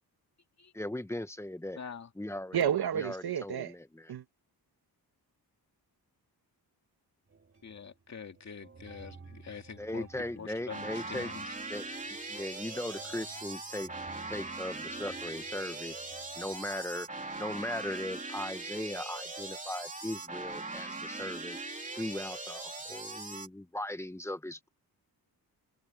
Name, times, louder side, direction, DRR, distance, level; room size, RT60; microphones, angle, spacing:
voice 1, 0.7-1.8 2.2-2.6 2.9-4.1 9.8-11.3 11.7-13.9 14.3-16.0 16.4-17.1 17.4-21.6 22.0-24.7, left 1 dB, 5° left, 1.0 m, -38 dB
voice 2, 1.8-2.1 7.6-10.1 10.4-11.4, left 6 dB, 45° left, 2.6 m, -45 dB
voice 3, 2.5-3.7 4.1-4.2, right 9 dB, 75° right, 1.5 m, -30 dB
sound 1, 7.3-8.1 8.3-16.8, right 4 dB, 35° right, 4.8 m, -56 dB
sound 2, 10.7-23.5, right 2 dB, 20° right, 3.1 m, -40 dB
wide cardioid pair, 140°, 38 cm